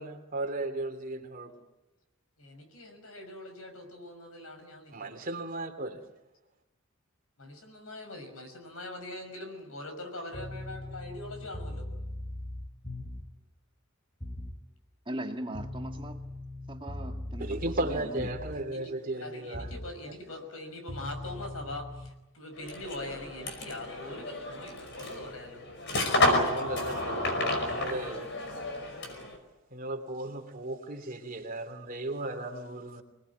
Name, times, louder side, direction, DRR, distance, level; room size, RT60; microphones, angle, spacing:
voice 1, 0.0-1.6 4.9-6.0 17.4-19.7 20.1-20.2 26.4-28.3 29.7-33.0, right 2 dB, 40° right, 5 dB, 2.9 m, -36 dB
voice 2, 2.4-5.2 7.4-11.9 18.7-25.6 27.7-27.9, left 2 dB, 75° left, 6 dB, 5.8 m, -42 dB
sound 1, 10.3-13.4 14.2-14.6 15.5-18.7 19.5-19.9 20.9-22.1, left 1 dB, 25° left, 3.5 m, -40 dB
voice 3, 15.1-16.2 16.7-18.3, right 1 dB, 25° right, 4 dB, 2.0 m, -39 dB
sound 2, 22.6-29.4, left 2 dB, 55° left, 5.4 m, -31 dB
26.5 x 19.5 x 9.6 m, 0.99 s
head